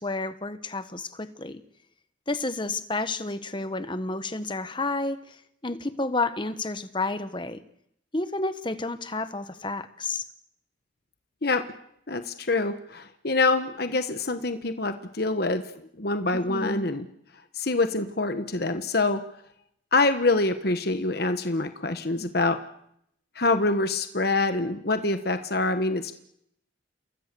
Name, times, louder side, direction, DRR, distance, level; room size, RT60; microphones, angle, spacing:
voice 1, 0.0-1.6 2.3-7.6 8.1-10.3 16.3-16.9, left 2 dB, 25° left, 11 dB, 1.3 m, -31 dB
voice 2, 12.1-15.6 16.0-17.0 17.5-19.2 19.9-22.6 23.4-26.1, left 3 dB, 50° left, 8 dB, 1.2 m, -25 dB
28.5 x 21.5 x 6.9 m, 0.74 s
head